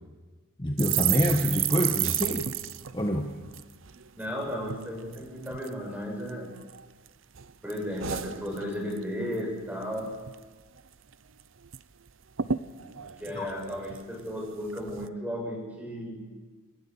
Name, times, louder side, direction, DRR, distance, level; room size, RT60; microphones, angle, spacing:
voice 1, 0.6-2.5 2.9-3.3 13.3-13.5, equal, 20° left, 2 dB, 1.3 m, -26 dB
sound 1, 0.8-4.3 4.6-4.8 5.1-5.7 6.3-7.1 7.4-9.0 9.3-9.6 9.8-10.4 10.8-10.9 11.1-11.8 12.1-12.2 12.4-14.3 14.8-15.1, right 11 dB, 65° right, 0.7 m, -32 dB
voice 2, 4.2-6.5 7.6-10.2 13.2-16.2, equal, 10° right, -1 dB, 6.7 m, -34 dB
28.5 x 14.0 x 7.2 m, 1.4 s
head